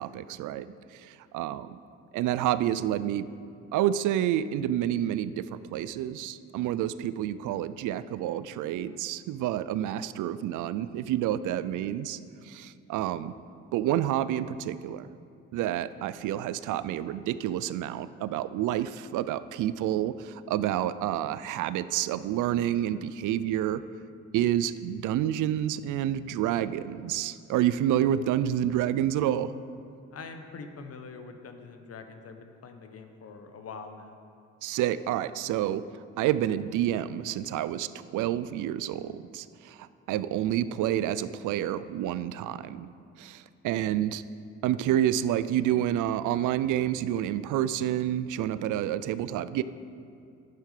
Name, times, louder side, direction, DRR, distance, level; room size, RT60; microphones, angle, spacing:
voice 1, 0.0-1.8 2.1-3.3 3.7-12.2 12.4-13.3 13.7-15.1 15.5-23.8 24.3-29.5 34.6-35.8 36.2-42.9 43.2-44.2 44.6-49.6, right 11 dB, 80° right, 15 dB, 0.5 m, -29 dB
voice 2, 30.1-34.2, left 4 dB, 50° left, 7 dB, 1.1 m, -44 dB
11.0 x 9.2 x 4.9 m, 2.5 s
cardioid pair, 90°, 30 cm